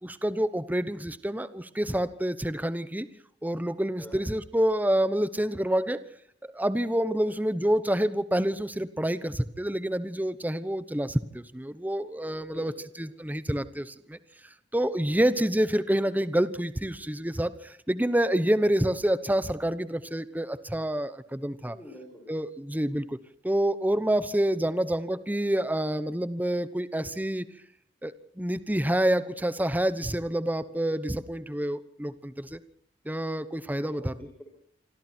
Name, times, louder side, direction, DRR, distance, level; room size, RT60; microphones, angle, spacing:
voice 1, 0.0-3.1 3.4-6.0 6.5-12.7 13.0-14.2 14.7-21.8 22.3-23.2 23.4-27.5 28.0-32.6 33.1-34.1, right 1 dB, 10° right, 14 dB, 1.0 m, -27 dB
voice 2, 21.6-22.4 33.8-34.4, equal, 5° left, -1 dB, 6.3 m, -47 dB
27.5 x 26.0 x 4.5 m, 0.62 s
head